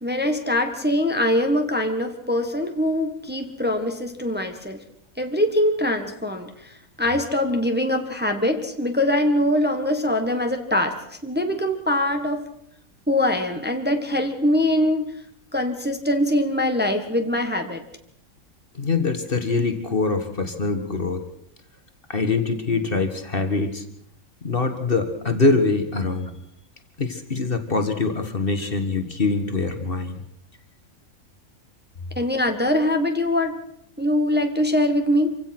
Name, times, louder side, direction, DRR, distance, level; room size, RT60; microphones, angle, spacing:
voice 1, 0.0-4.8 5.2-6.7 7.0-10.9 11.2-12.4 13.1-15.1 15.5-17.8 32.1-33.6 34.0-35.4, left 1 dB, 5° right, 5 dB, 1.5 m, -23 dB
voice 2, 18.7-21.2 22.1-23.9 24.4-26.4 27.0-30.2, left 3 dB, 40° left, 7 dB, 1.8 m, -24 dB
26.0 x 16.5 x 6.1 m, 0.73 s
omnidirectional pair, 1.4 m